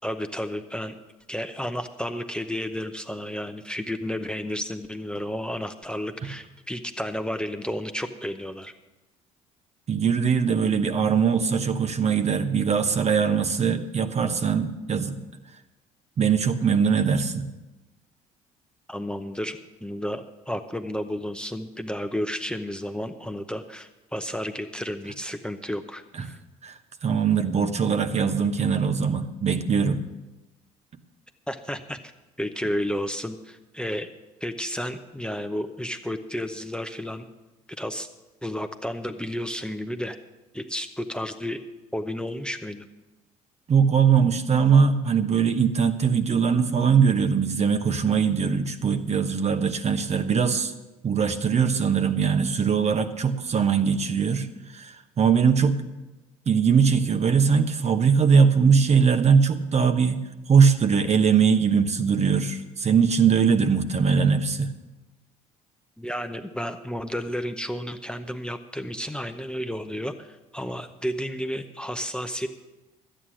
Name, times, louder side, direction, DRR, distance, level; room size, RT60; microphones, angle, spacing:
voice 1, 0.0-1.0 1.3-8.7 18.9-26.4 31.5-32.0 32.4-34.1 34.4-37.3 37.8-38.1 38.4-40.2 40.5-41.6 41.9-42.9 66.0-72.5, equal, 5° left, 7 dB, 0.8 m, -32 dB
voice 2, 9.9-15.2 16.2-17.5 26.6-30.0 43.7-50.7 51.0-54.5 54.7-55.8 56.5-60.2 60.5-64.7, right 6 dB, 40° right, 8 dB, 1.0 m, -21 dB
12.5 x 9.0 x 6.2 m, 1.1 s
hypercardioid pair, 55°, 18 cm